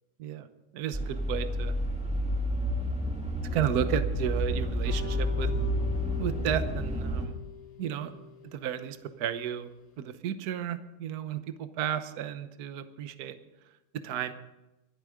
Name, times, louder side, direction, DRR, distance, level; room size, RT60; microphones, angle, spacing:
voice 1, 0.7-1.7 3.5-5.5 6.2-7.3 7.8-8.1 8.4-9.7 10.0-13.4 14.0-14.3, right 9 dB, 55° right, 10 dB, 1.2 m, -33 dB
sound 1, 0.9-7.3, equal, 5° right, 1.5 m, -30 dB
sound 2, 4.8-9.7, left 6 dB, 80° left, 2.8 m, -44 dB
24.5 x 8.2 x 5.0 m, 1.0 s
omnidirectional pair, 2.4 m